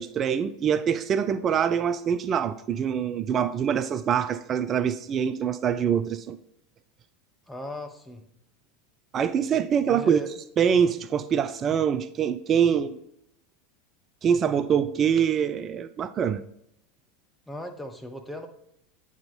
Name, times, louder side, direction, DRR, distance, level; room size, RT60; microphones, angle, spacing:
voice 1, 0.0-6.4 9.1-10.2 10.6-13.0 14.2-16.4, right 8 dB, 30° right, 0.3 m, -24 dB
voice 2, 7.5-8.2 9.9-10.3 17.5-18.5, left 1 dB, 5° left, 0.9 m, -37 dB
8.8 x 3.6 x 4.1 m
figure-of-eight pair, 80°, 0 cm